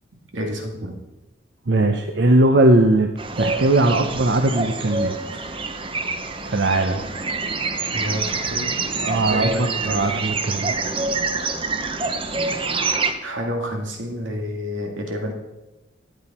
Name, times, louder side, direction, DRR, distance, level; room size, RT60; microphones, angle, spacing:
voice 1, 0.3-0.9 7.9-8.8 9.3-10.0 13.2-15.3, equal, 85° right, 2 dB, 2.2 m, -29 dB
voice 2, 1.7-3.1 3.4-5.2 6.4-7.0 9.0-10.7, right 2 dB, 60° right, 5 dB, 0.7 m, -19 dB
sound 1, 3.2-13.1, right 3 dB, 25° right, 0.7 m, -26 dB
13.0 x 9.0 x 4.3 m, 1.0 s
head